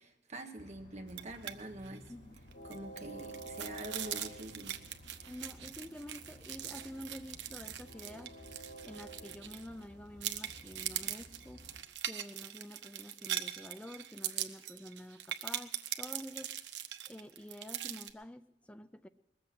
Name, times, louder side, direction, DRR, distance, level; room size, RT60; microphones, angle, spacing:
voice 1, 0.0-2.0 2.6-4.8 5.2-5.3, right 1 dB, 40° right, 5 dB, 1.4 m, -46 dB
Train, 0.6-11.8, right 1 dB, 65° left, 2.8 m, -52 dB
sound 1, 1.1-1.5 1.8-2.0 2.4-9.8 10.2-18.1, right 11 dB, 80° right, 0.8 m, -41 dB
voice 2, 5.3-8.3 8.8-11.7 12.0-16.6 17.1-19.1, equal, 5° left, 11 dB, 0.4 m, -48 dB
20.5 x 7.8 x 7.7 m, 0.92 s
head